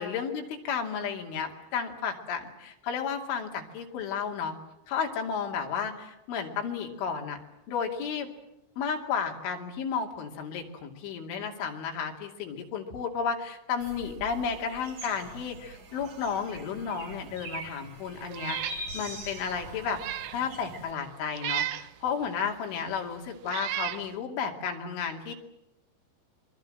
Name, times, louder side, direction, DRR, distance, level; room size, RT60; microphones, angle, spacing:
voice 1, 0.0-4.5 4.9-7.4 7.7-8.3 8.8-20.0 20.3-25.3, left 6 dB, 80° left, 2 dB, 5.0 m, -33 dB
sound 1, 13.8-20.9, right 2 dB, 40° right, 4.3 m, -43 dB
Meow, 18.3-18.8 19.2-19.3 19.8-20.4 21.4-21.9 22.8-22.9 23.4-24.0, right 12 dB, 90° right, 1.8 m, -33 dB
27.0 x 23.5 x 7.7 m, 0.90 s
omnidirectional pair, 5.4 m